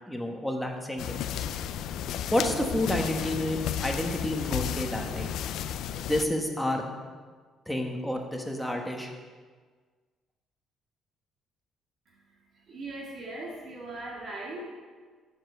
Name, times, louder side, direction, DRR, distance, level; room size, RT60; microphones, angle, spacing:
voice 1, 0.1-1.4 2.3-5.3 6.0-7.1 7.7-9.1, left 1 dB, ahead, 2 dB, 1.2 m, -30 dB
sound 1, 1.0-6.2, left 9 dB, 75° left, 0.4 m, -33 dB
voice 2, 12.1-14.7, right 2 dB, 50° right, -3 dB, 1.8 m, -40 dB
7.4 x 7.3 x 6.8 m, 1.5 s
cardioid pair, 135°, 0 cm